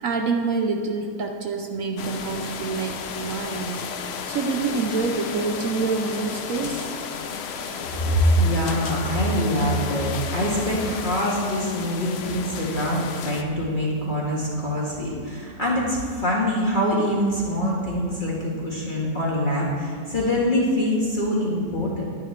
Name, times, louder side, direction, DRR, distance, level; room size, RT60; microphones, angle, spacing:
voice 1, 0.0-3.9 4.3-6.9, right 4 dB, 65° right, 4 dB, 0.9 m, -27 dB
sound 1, 2.0-13.4, left 6 dB, 90° left, 0.5 m, -33 dB
voice 2, 8.0-22.0, equal, 30° left, -5 dB, 1.6 m, -24 dB
11.5 x 10.0 x 3.2 m, 2.3 s
omnidirectional pair, 1.8 m